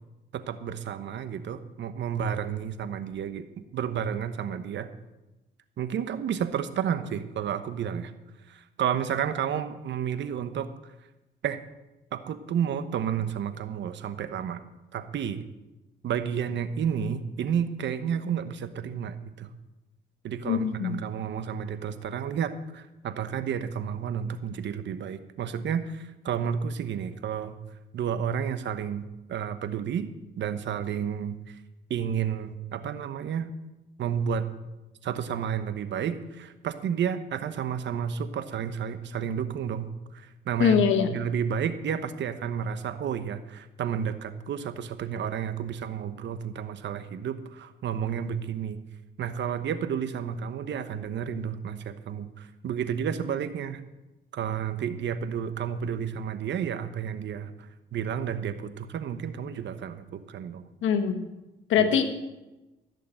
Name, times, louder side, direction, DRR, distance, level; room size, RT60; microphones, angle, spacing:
voice 1, 0.3-4.9 5.8-8.1 8.5-10.7 11.4-11.6 12.1-14.6 14.9-15.4 16.0-19.5 20.2-27.6 27.9-30.1 30.4-31.6 31.9-33.5 34.0-34.5 35.0-40.8 41.1-48.8 49.2-53.8 54.3-60.7 61.8-61.9, right 8 dB, 65° right, 11 dB, 1.0 m, -31 dB
voice 2, 20.4-21.0 40.6-41.1 60.8-61.2 61.7-62.0, left 7 dB, 85° left, 7 dB, 1.5 m, -22 dB
15.5 x 6.7 x 7.8 m, 1.0 s
cardioid pair, 90°, 20 cm